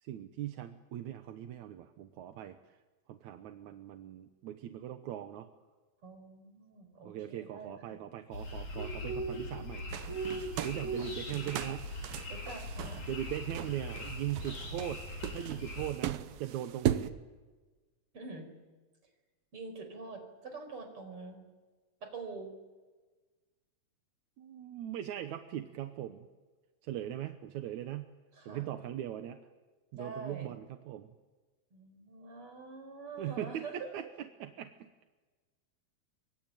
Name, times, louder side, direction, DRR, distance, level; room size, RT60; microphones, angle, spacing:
voice 1, 0.0-2.8 3.1-5.5 7.0-10.1 10.6-11.9 13.1-15.0 15.3-17.1 24.4-26.3 26.8-28.1 28.5-29.4 29.9-31.1 33.2-34.7, right 12 dB, 65° right, 8 dB, 2.1 m, -40 dB
voice 2, 6.0-8.0 12.3-13.1 18.1-18.5 19.0-19.1 19.5-21.4 22.0-22.5 28.3-28.7 29.9-30.5 31.7-33.9, right 4 dB, 35° right, 7 dB, 5.6 m, -45 dB
sound 1, 8.3-15.9, equal, 40° left, 5.4 m, -40 dB
sound 2, 9.9-17.1, right 12 dB, 85° right, 2.8 m, -38 dB
26.0 x 24.0 x 9.2 m, 1.3 s
omnidirectional pair, 4.2 m